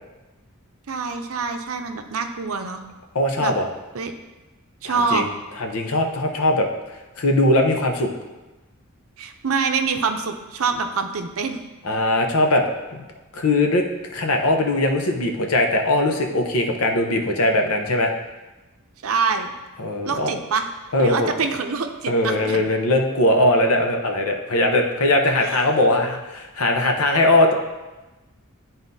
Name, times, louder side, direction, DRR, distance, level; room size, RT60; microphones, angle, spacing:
voice 1, 0.9-2.8 3.4-3.6 3.9-4.1 4.8-5.3 9.2-11.6 19.0-19.5 20.0-20.7 21.0-22.7 25.4-25.6, right 5 dB, 70° right, 6 dB, 0.6 m, -25 dB
voice 2, 3.1-3.7 4.8-5.3 5.6-6.7 7.2-8.1 11.8-12.6 12.9-13.0 13.3-13.8 14.1-18.1 19.8-20.3 20.9-21.3 22.1-27.5, left 1 dB, 75° left, 3 dB, 0.8 m, -20 dB
11.0 x 4.0 x 2.7 m, 1.1 s
head